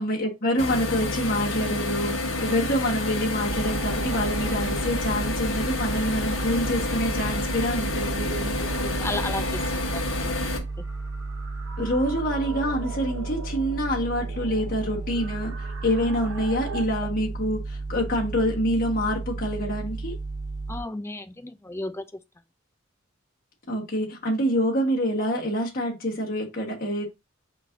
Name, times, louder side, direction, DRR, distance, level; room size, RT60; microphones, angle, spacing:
voice 1, 0.0-8.3 11.8-20.1 23.7-27.1, equal, 45° left, 1.4 m, -26 dB
sound 1, 0.6-10.6, left 2 dB, 80° left, 1.1 m, -29 dB
sound 2, 2.0-16.9, right 4 dB, 80° right, 0.8 m, -42 dB
sound 3, 3.4-20.8, right 3 dB, 40° right, 1.6 m, -33 dB
voice 2, 8.4-9.6 9.9-10.3 20.7-22.0, left 2 dB, 10° left, 0.4 m, -34 dB
5.1 x 3.2 x 2.6 m
head